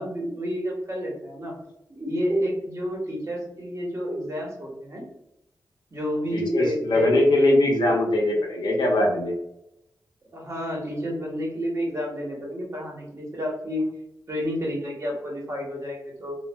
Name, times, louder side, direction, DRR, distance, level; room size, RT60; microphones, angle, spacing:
voice 1, 0.0-1.5 1.9-5.0 5.9-7.1 10.3-13.8 14.3-16.4, equal, 40° right, -2 dB, 1.1 m, -30 dB
voice 2, 6.3-9.3, left 1 dB, 70° left, 0 dB, 0.7 m, -21 dB
3.2 x 2.3 x 2.2 m, 0.82 s
wide cardioid pair, 75°, 8 cm